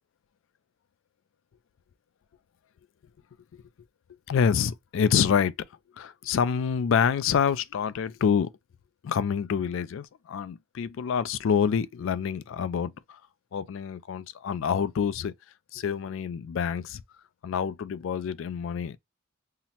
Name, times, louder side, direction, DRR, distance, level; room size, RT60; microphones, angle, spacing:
voice 1, 4.3-5.5 6.0-8.5 9.0-13.2 13.5-15.3 15.7-17.0 17.4-19.0, left 7 dB, 65° left, 0.3 m, -27 dB
5.6 x 2.1 x 2.8 m
head